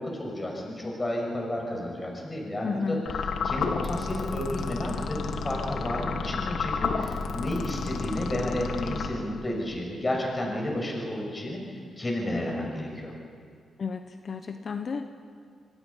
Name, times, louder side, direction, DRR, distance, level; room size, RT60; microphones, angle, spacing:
voice 1, 0.0-3.0 3.4-11.6 12.0-13.1, left 1 dB, 25° left, 0 dB, 6.2 m, -31 dB
voice 2, 2.6-3.1 13.8-15.1, left 5 dB, 55° left, 7 dB, 1.0 m, -32 dB
sound 1, 3.1-9.6, left 5 dB, 75° left, 1.3 m, -31 dB
26.0 x 20.0 x 5.6 m, 2.2 s
cardioid pair, 70°, 0 cm